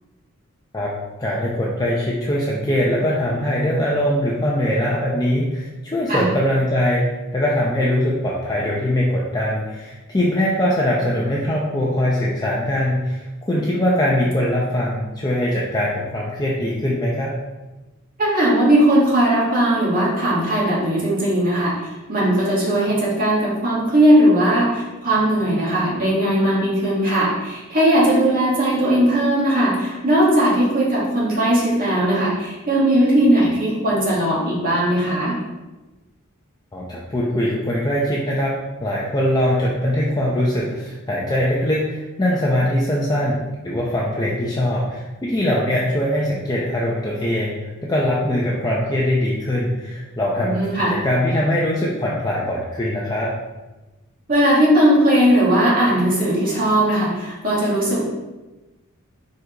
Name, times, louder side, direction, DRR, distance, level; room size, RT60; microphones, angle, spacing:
voice 1, 1.2-17.4 36.7-38.5 38.8-50.6 50.9-53.3, left 1 dB, 20° left, -5 dB, 0.7 m, -22 dB
voice 2, 18.2-21.8 22.1-35.4 50.4-50.9 54.3-58.0, right 1 dB, 40° right, -6 dB, 2.1 m, -18 dB
4.8 x 4.0 x 5.0 m, 1.1 s
head